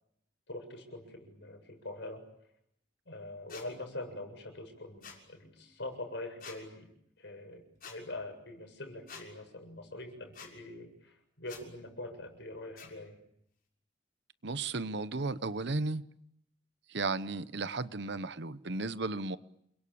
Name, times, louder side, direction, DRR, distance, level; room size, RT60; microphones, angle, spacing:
voice 1, 0.5-2.2 3.1-6.9 7.2-13.2, left 2 dB, 65° left, 5 dB, 7.5 m, -44 dB
sound 1, 3.5-3.7 5.0-5.2 6.4-6.6 7.8-8.0 9.1-9.2 10.3-10.5 11.4-11.6 12.8-12.9, left 6 dB, 50° left, 6.4 m, -47 dB
voice 2, 14.4-16.0 16.9-19.4, right 3 dB, 65° right, 14 dB, 1.0 m, -34 dB
29.0 x 22.5 x 8.7 m, 0.76 s
head